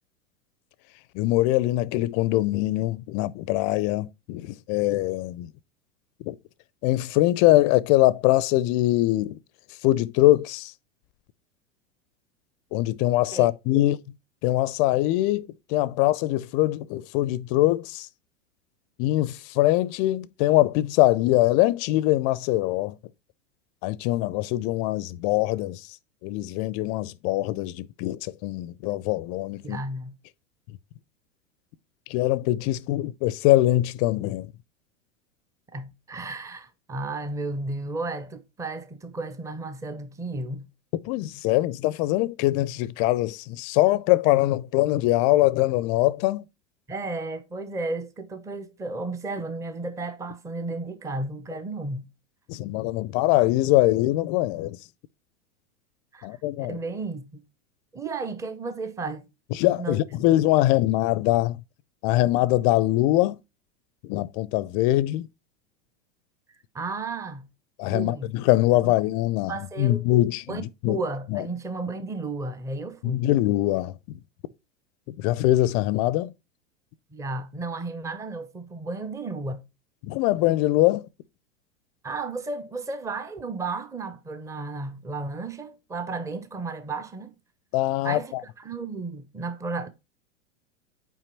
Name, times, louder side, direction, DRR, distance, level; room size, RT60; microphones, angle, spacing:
voice 1, 1.1-5.5 6.2-6.3 6.8-9.4 9.8-10.7 12.7-14.0 14.4-18.1 19.0-23.0 23.8-25.9 26.2-29.8 32.1-34.5 41.0-46.4 52.5-54.8 56.2-56.8 59.6-61.6 62.0-63.4 64.0-65.3 67.8-71.0 71.3-71.4 73.0-74.2 75.1-76.3 80.0-81.1 87.7-88.4, left 16 dB, 35° left, 0.4 m, -23 dB
voice 2, 29.6-30.2 35.7-40.7 46.9-52.1 56.1-57.4 57.9-59.3 59.8-60.0 66.7-67.5 67.9-68.3 68.8-68.9 69.5-70.0 70.5-70.6 70.9-73.3 77.1-79.6 82.0-87.3 88.0-89.9, right 3 dB, 10° right, 0.6 m, -33 dB
5.9 x 4.6 x 4.4 m
hypercardioid pair, 95°, 37 cm